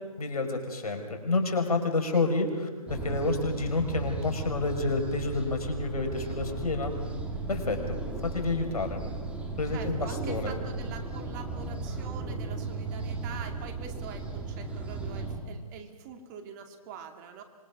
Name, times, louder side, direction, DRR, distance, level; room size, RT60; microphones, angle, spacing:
voice 1, 0.2-2.5 2.9-6.9 7.5-9.0 9.6-10.5, left 3 dB, 80° left, 5 dB, 4.8 m, -29 dB
sound 1, 2.9-15.4, right 3 dB, 5° right, 2.7 m, -36 dB
voice 2, 9.7-17.4, right 7 dB, 30° right, 6 dB, 2.3 m, -45 dB
25.5 x 21.5 x 6.0 m, 1.4 s
hypercardioid pair, 145°, 19 cm